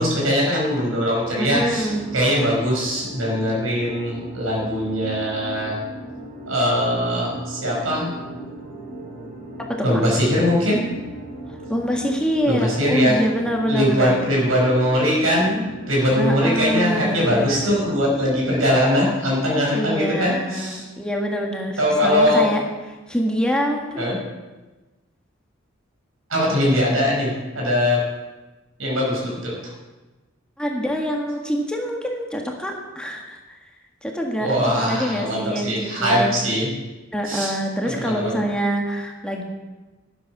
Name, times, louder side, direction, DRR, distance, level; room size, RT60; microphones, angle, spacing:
voice 1, 0.0-5.7 6.5-8.1 9.8-10.8 12.5-13.2 13.7-20.8 21.8-22.5 24.0-24.2 26.3-28.0 28.8-29.5 34.4-36.7 37.3-37.6 37.8-38.3, equal, 80° right, -3 dB, 5.8 m, -21 dB
sound 1, 1.2-18.6, right 1 dB, 45° right, 5.6 m, -37 dB
voice 2, 1.4-2.0 9.6-10.0 11.7-14.3 16.2-17.8 19.7-22.6 23.1-24.2 30.6-33.4 34.0-34.5 34.8-36.3 37.1-39.4, equal, 5° left, 1 dB, 1.7 m, -25 dB
12.5 x 11.0 x 6.0 m, 1.2 s
head